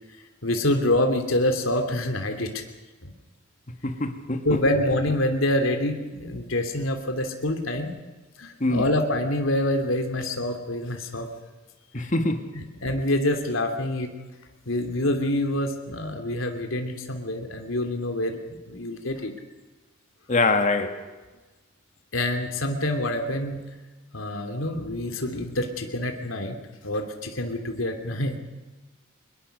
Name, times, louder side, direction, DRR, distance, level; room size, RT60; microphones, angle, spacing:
voice 1, 0.4-2.6 3.0-3.1 4.4-7.9 8.4-11.3 12.0-12.1 12.5-14.1 14.7-19.3 22.1-23.6 24.1-26.6 26.8-28.4, left 1 dB, 85° left, 5 dB, 2.9 m, -26 dB
voice 2, 3.8-4.6 8.6-8.9 11.9-12.5 20.3-21.1, left 2 dB, 40° left, 7 dB, 2.0 m, -24 dB
24.0 x 22.0 x 6.7 m, 1.2 s
head